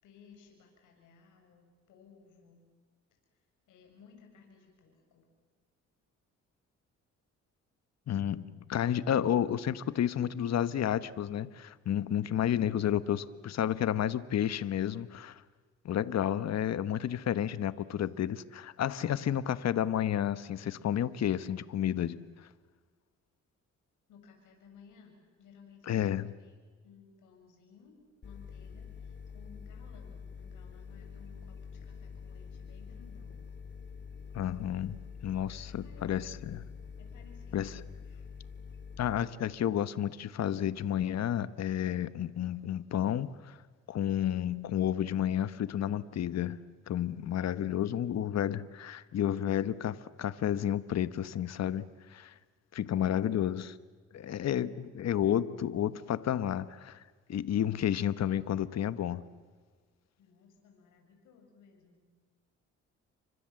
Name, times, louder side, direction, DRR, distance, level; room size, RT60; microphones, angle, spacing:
voice 1, 0.0-2.7 3.7-5.3 17.8-18.1 24.1-28.0 28.2-33.4 35.7-36.7 37.0-38.3 47.2-48.5 54.1-54.9 60.2-62.1, left 5 dB, 85° left, 7.5 m, -59 dB
voice 2, 8.1-15.4 15.8-22.2 25.9-26.3 34.3-36.6 37.5-37.8 39.0-43.6 43.9-46.6 46.9-52.3 52.7-53.8 54.1-57.0 57.3-59.2, left 10 dB, 60° left, 1.2 m, -31 dB
sound 1, 28.2-39.2, left 6 dB, 40° left, 3.9 m, -46 dB
30.0 x 25.0 x 7.7 m
cardioid pair, 90°, 30 cm